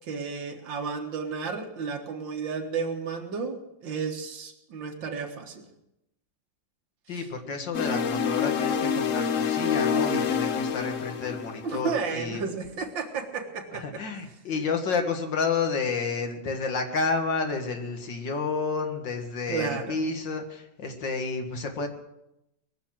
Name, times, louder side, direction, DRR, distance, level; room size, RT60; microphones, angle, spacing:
voice 1, 0.1-5.7 7.1-7.3 11.6-14.0 19.5-20.0, right 5 dB, 85° right, 4 dB, 2.3 m, -32 dB
voice 2, 7.1-12.4 13.7-21.9, left 4 dB, 75° left, 5 dB, 2.4 m, -30 dB
sound 1, 7.7-12.1, left 6 dB, 55° left, 1.0 m, -27 dB
21.0 x 7.2 x 7.5 m, 0.87 s
omnidirectional pair, 2.0 m